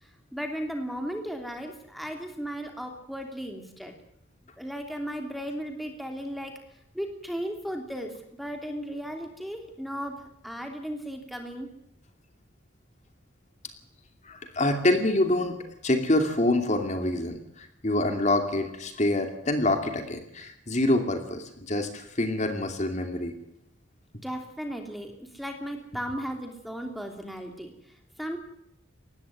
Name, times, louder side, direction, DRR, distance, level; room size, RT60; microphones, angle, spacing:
voice 1, 0.0-3.9 4.6-6.5 6.9-10.2 10.4-11.7 24.2-27.7 28.2-28.4, equal, ahead, 4 dB, 3.0 m, -35 dB
voice 2, 14.2-15.6 15.8-23.3, left 1 dB, 35° left, 6 dB, 2.6 m, -26 dB
19.5 x 15.5 x 9.6 m, 0.77 s
head